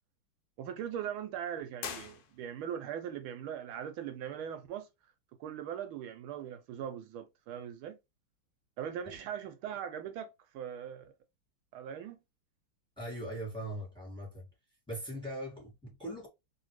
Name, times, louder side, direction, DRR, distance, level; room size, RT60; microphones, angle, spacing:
voice 1, 0.6-4.9 5.4-8.0 8.8-11.1 11.7-12.2, right 9 dB, 80° right, 1.3 m, -40 dB
sound 1, 1.7-2.8, left 7 dB, 80° left, 0.8 m, -43 dB
voice 2, 13.0-14.5 14.9-16.3, right 1 dB, 5° left, 1.3 m, -40 dB
3.0 x 2.8 x 3.0 m
omnidirectional pair, 2.4 m